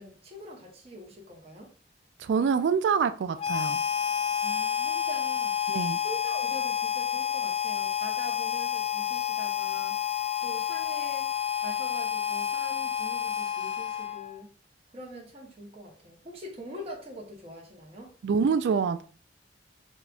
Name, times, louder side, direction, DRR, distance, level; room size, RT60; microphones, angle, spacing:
voice 1, 0.0-1.7 4.4-5.6 6.0-10.0 10.4-11.3 11.5-14.5 14.9-18.1, right 1 dB, 35° right, 0.9 m, -44 dB
voice 2, 2.2-3.8 5.7-6.0 18.2-19.0, right 6 dB, 75° right, 0.3 m, -26 dB
Harmonica, 3.4-14.4, left 9 dB, 30° left, 0.3 m, -29 dB
5.2 x 2.3 x 2.4 m
head